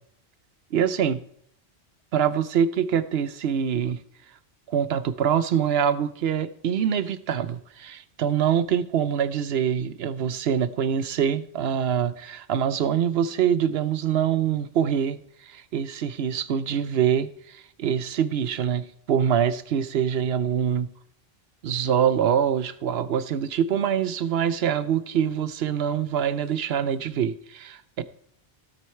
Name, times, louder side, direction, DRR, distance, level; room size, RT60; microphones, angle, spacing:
voice 1, 0.7-1.2 2.1-4.0 4.7-20.9 21.6-28.0, right 8 dB, 80° right, 14 dB, 0.9 m, -24 dB
16.0 x 6.3 x 4.5 m, 0.68 s
omnidirectional pair, 1.0 m